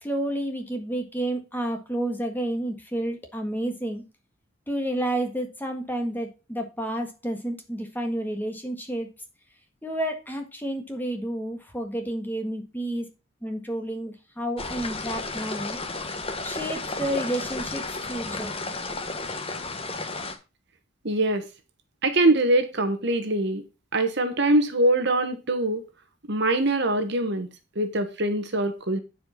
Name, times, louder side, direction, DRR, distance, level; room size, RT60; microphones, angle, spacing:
voice 1, 0.0-4.0 4.7-9.1 9.8-13.1 13.4-15.8 16.4-18.6, right 1 dB, 10° left, 1.7 m, -30 dB
sound 1, 14.6-20.3, left 3 dB, 25° left, 1.5 m, -33 dB
voice 2, 21.0-21.5 22.0-23.6 23.9-25.8 26.3-27.5 27.7-29.0, right 2 dB, 55° right, 1.3 m, -23 dB
10.0 x 5.0 x 5.7 m
head